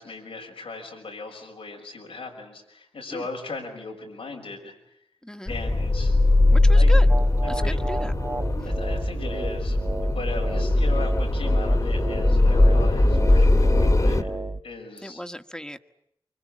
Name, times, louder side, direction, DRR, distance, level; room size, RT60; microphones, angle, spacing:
voice 1, 0.0-5.0 5.5-6.1 6.7-6.9 7.4-7.8 8.6-14.3 14.6-15.2, left 3 dB, 90° left, 1 dB, 5.9 m, -38 dB
voice 2, 5.2-5.5 6.5-7.1 7.5-8.1 15.0-15.8, equal, 10° left, 8 dB, 1.8 m, -35 dB
sound 1, 5.5-14.2, left 2 dB, 40° left, 2.4 m, -20 dB
sound 2, 7.1-14.6, right 2 dB, 30° right, 1.2 m, -32 dB
25.5 x 25.0 x 8.7 m, 0.76 s
cardioid pair, 40°, 9 cm